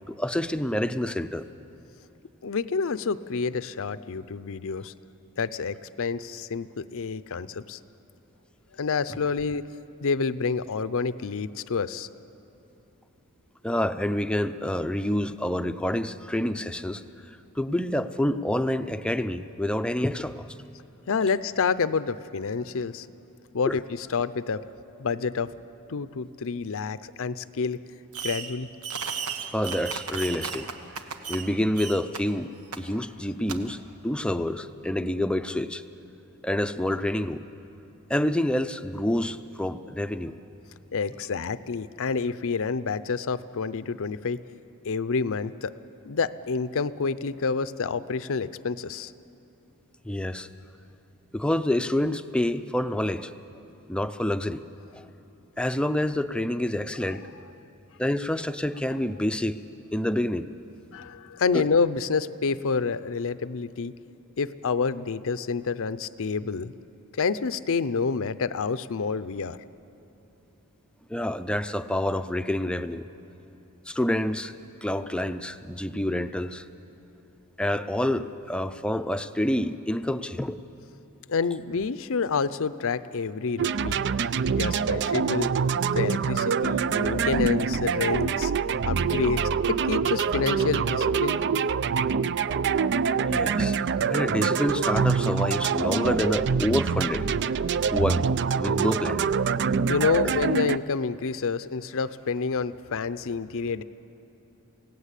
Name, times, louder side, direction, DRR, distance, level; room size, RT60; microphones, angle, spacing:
voice 1, 0.1-1.5 13.6-17.0 17.6-20.5 23.7-23.8 29.5-30.7 31.3-32.5 32.8-33.8 34.0-35.8 36.4-37.4 38.1-40.3 50.0-50.5 51.3-53.3 53.9-54.6 54.9-55.0 55.6-57.3 58.0-59.6 59.9-60.5 61.5-61.7 71.1-73.0 73.9-74.5 74.8-76.7 77.6-80.6 93.2-93.8 94.1-97.3 97.9-99.3 100.2-100.4, left 1 dB, 5° left, 10 dB, 0.6 m, -27 dB
voice 2, 2.4-4.9 5.4-7.8 8.8-9.7 10.0-12.1 21.1-23.1 23.5-24.6 25.0-25.5 25.9-27.8 28.2-28.7 40.9-44.4 44.8-45.7 46.1-49.1 57.1-57.2 60.9-63.9 64.4-66.7 67.2-69.6 81.3-84.0 84.6-85.5 85.9-88.5 88.9-91.4 99.9-103.8, left 5 dB, 65° left, 14 dB, 0.6 m, -28 dB
Fireworks, 28.1-28.6 28.8-31.5 31.8-32.2 32.7-32.8 33.5-33.6, right 6 dB, 90° right, 1.4 m, -34 dB
sound 1, 83.6-100.8, right 6 dB, 55° right, 0.4 m, -25 dB
28.0 x 17.5 x 8.3 m, 2.9 s
head